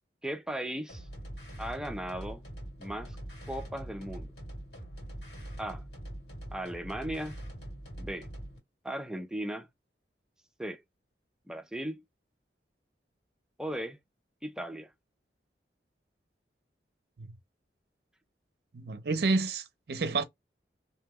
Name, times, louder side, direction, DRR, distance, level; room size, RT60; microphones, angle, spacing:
voice 1, 0.2-1.1 1.6-2.4 2.8-3.2 3.5-4.3 5.6-5.8 6.5-7.4 8.0-8.3 8.8-9.7 10.6-10.8 11.5-12.0 13.6-14.0 14.4-14.9, right 1 dB, 5° right, 0.4 m, -37 dB
sound 1, 0.9-8.6, right 1 dB, 65° left, 1.8 m, -43 dB
voice 2, 18.7-20.2, right 3 dB, 60° right, 0.5 m, -29 dB
2.7 x 2.1 x 3.5 m
head